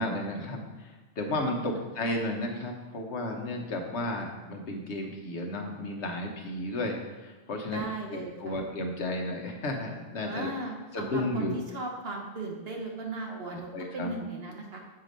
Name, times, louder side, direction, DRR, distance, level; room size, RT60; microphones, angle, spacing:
voice 1, 0.0-7.9 8.1-10.5 10.9-11.6 13.3-14.1, left 1 dB, 65° left, 2 dB, 1.2 m, -33 dB
voice 2, 7.7-8.6 10.2-14.8, right 2 dB, 55° right, 0 dB, 1.2 m, -37 dB
6.6 x 4.8 x 5.2 m, 1.2 s
omnidirectional pair, 1.3 m